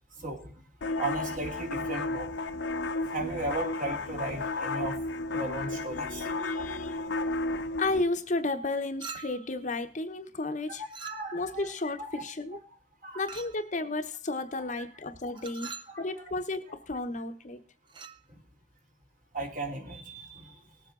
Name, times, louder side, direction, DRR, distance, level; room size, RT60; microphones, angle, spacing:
voice 1, 0.1-2.4 3.1-6.4 7.5-7.6 10.7-11.7 12.0-12.6 13.0-13.3 14.8-14.9 15.3-16.3 18.3-18.4 19.3-20.7, right 2 dB, 45° right, 3 dB, 2.4 m, -37 dB
sound 1, 0.8-8.0, left 2 dB, 80° left, 0.8 m, -33 dB
voice 2, 6.1-7.1 7.8-10.8 11.3-12.6 13.1-17.6, left 2 dB, 40° left, 8 dB, 0.9 m, -33 dB
Chink clink, 9.0-9.6 10.9-11.6 13.3-13.7 15.4-16.0 17.9-18.2, right 6 dB, 25° right, 0.5 m, -43 dB
19.0 x 7.6 x 3.7 m, 0.34 s
head